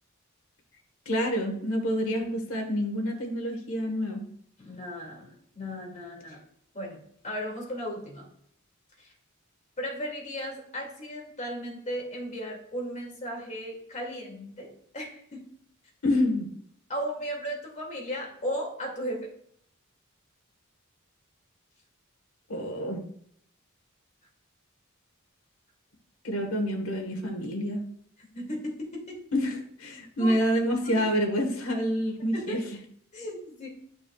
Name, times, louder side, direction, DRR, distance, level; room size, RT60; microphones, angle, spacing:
voice 1, 1.0-4.2 16.0-16.5 22.5-23.0 26.2-27.8 29.3-32.6, equal, 75° left, 2 dB, 1.4 m, -27 dB
voice 2, 4.6-6.4 6.7-8.3 9.0-9.1 9.8-15.4 16.9-19.3 28.3-29.2 30.2-30.4 30.8-31.1 32.3-32.6 33.1-33.7, equal, 35° left, -1 dB, 2.4 m, -36 dB
10.5 x 6.1 x 2.4 m, 0.65 s
head